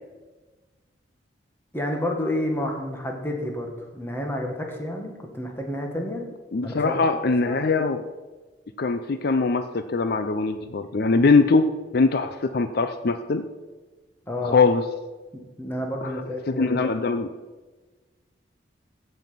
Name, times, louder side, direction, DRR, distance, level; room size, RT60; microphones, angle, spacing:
voice 1, 1.7-6.2 6.6-7.1 7.4-7.6 14.3-14.6 15.3-16.9, left 1 dB, 15° left, 1 dB, 1.7 m, -30 dB
voice 2, 6.5-8.1 8.8-13.4 14.4-14.9 16.0-16.1 16.5-17.3, left 4 dB, 55° left, 9 dB, 0.5 m, -22 dB
15.0 x 5.6 x 5.6 m, 1.3 s
head